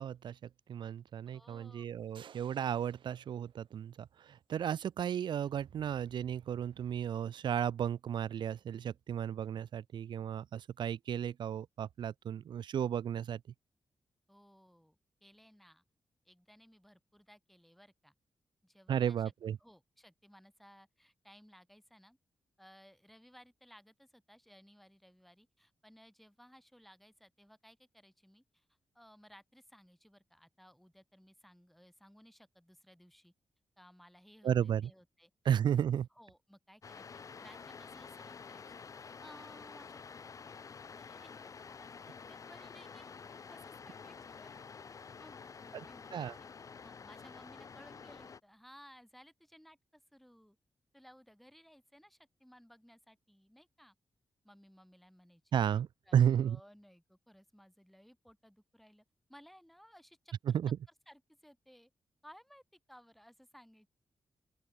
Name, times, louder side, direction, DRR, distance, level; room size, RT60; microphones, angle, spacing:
voice 1, 0.0-13.4 18.9-19.6 34.4-34.9 35.5-36.1 45.7-45.8 46.1-46.3 55.5-56.6 60.5-60.8, right 9 dB, 70° right, 0.4 m, -33 dB
voice 2, 1.3-2.2 14.3-15.0 15.2-15.8 16.2-18.1 18.6-19.3 19.6-22.2 22.6-28.7 28.9-33.3 33.8-35.3 36.1-40.2 40.5-41.4 41.8-44.8 45.2-46.5 46.8-50.6 50.9-54.0 54.4-55.4 55.7-55.8 56.1-60.6 61.1-61.9 62.2-63.9, equal, ahead, 8.0 m, -60 dB
sound 1, 2.1-4.0 5.5-7.1, right 9 dB, 85° right, 5.4 m, -60 dB
sound 2, 36.8-48.4, left 5 dB, 45° left, 0.5 m, -50 dB
open air
cardioid pair, 90°, 8 cm